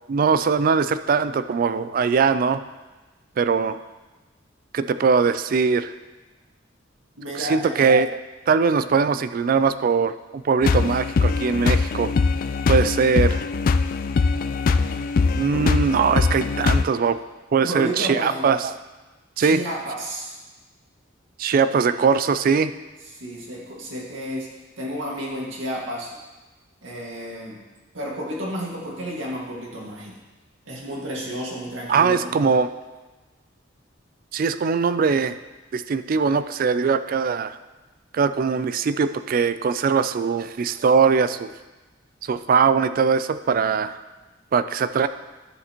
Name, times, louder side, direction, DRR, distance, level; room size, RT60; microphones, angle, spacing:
voice 1, 0.1-2.6 3.4-3.8 4.7-5.9 7.3-8.2 8.5-12.1 12.7-13.4 15.4-17.2 17.5-18.7 19.4-19.6 21.4-22.7 31.9-32.7 34.3-35.4 35.7-37.6 38.1-41.5 42.2-44.0 44.5-45.1, right 5 dB, 45° right, 12 dB, 0.3 m, -21 dB
voice 2, 7.2-7.8 15.5-15.9 17.6-18.5 19.4-20.4 23.1-24.5 24.8-26.1 26.8-27.6 27.9-30.2 30.7-32.5, equal, 90° right, -3 dB, 1.9 m, -32 dB
sound 1, 10.6-16.8, left 4 dB, 45° left, 0.3 m, -22 dB
11.0 x 6.6 x 3.0 m, 1.2 s
head